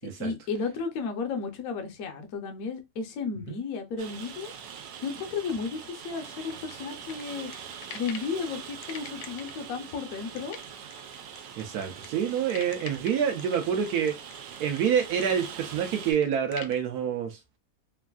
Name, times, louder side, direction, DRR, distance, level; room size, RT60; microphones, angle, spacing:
voice 1, 0.2-4.5 5.0-7.5 7.9-10.6, left 5 dB, 65° left, 1.0 m, -33 dB
Rain, 4.0-16.1, right 7 dB, 90° right, 1.3 m, -43 dB
sound 1, 6.1-8.3 8.8-16.8, left 8 dB, 85° left, 1.2 m, -45 dB
voice 2, 11.6-14.1 14.6-17.4, right 8 dB, 70° right, 1.0 m, -27 dB
3.2 x 2.5 x 2.2 m
omnidirectional pair, 1.9 m